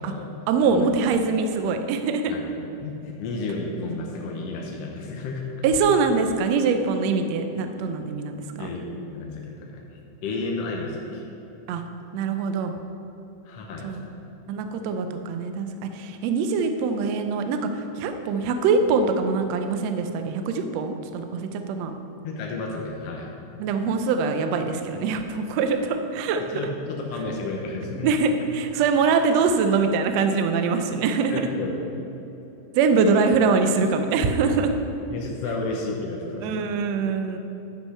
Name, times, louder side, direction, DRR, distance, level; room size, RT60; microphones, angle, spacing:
voice 1, 0.5-2.3 5.6-8.7 11.7-11.8 12.1-12.7 13.8-14.0 14.5-22.0 23.6-26.4 28.0-31.5 32.7-34.7 36.4-37.4, right 4 dB, 80° right, 7 dB, 1.5 m, -23 dB
voice 2, 2.3-5.4 8.6-8.9 9.1-11.3 13.4-14.0 22.2-23.3 26.4-28.1 31.3-31.7 33.1-33.2 35.1-36.5, left 3 dB, 70° left, -1 dB, 1.5 m, -32 dB
10.0 x 6.0 x 5.6 m, 3.0 s
omnidirectional pair, 3.7 m